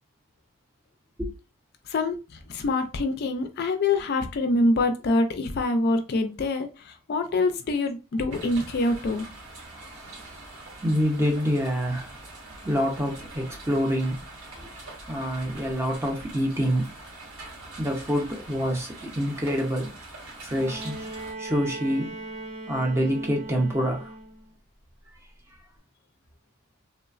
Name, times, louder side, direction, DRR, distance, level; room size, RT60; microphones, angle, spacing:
voice 1, 2.5-9.3, left 2 dB, 50° left, 0.4 m, -25 dB
sound 1, 8.3-21.3, right 2 dB, 85° right, 1.1 m, -44 dB
voice 2, 10.8-12.1 12.6-14.2 14.6-14.7 15.1-16.9 17.8-19.9 20.4-21.0 21.4-22.2 22.7-24.1, equal, 10° right, 0.5 m, -26 dB
Bowed string instrument, 20.5-24.5 25.8-25.9, right 2 dB, 65° right, 0.8 m, -39 dB
3.0 x 2.0 x 2.4 m
head